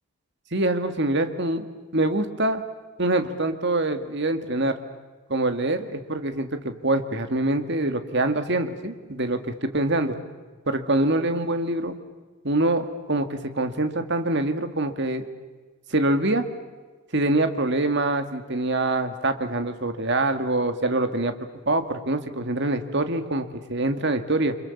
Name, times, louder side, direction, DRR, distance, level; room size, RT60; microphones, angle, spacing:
voice 1, 0.5-1.7 1.9-2.6 3.0-4.7 5.3-10.2 10.7-11.9 12.4-15.2 15.9-16.4 17.1-21.3 21.7-24.6, right 2 dB, 55° right, 8 dB, 2.0 m, -24 dB
29.5 x 25.5 x 7.2 m, 1.3 s
head